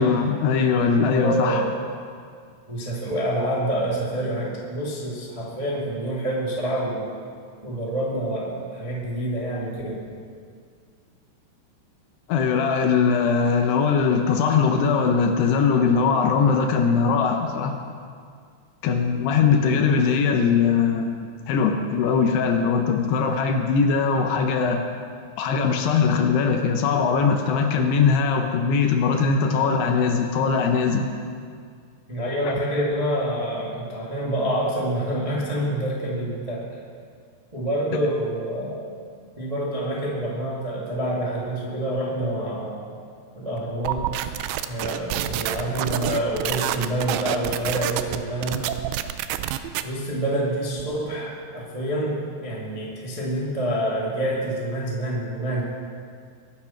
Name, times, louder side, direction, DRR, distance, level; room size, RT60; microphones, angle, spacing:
voice 1, 0.0-1.6 12.3-17.7 18.8-24.8 25.4-31.1, left 5 dB, 80° left, 4 dB, 3.0 m, -21 dB
voice 2, 1.0-1.7 2.7-7.1 7.6-10.2 32.1-36.7 37.5-38.9 39.4-42.9 43.3-44.3 44.7-48.7 49.8-55.6, right 1 dB, 15° right, -5 dB, 1.1 m, -27 dB
sound 1, 43.9-49.8, right 12 dB, 80° right, 2.4 m, -28 dB
22.5 x 8.5 x 5.9 m, 2.1 s
omnidirectional pair, 4.7 m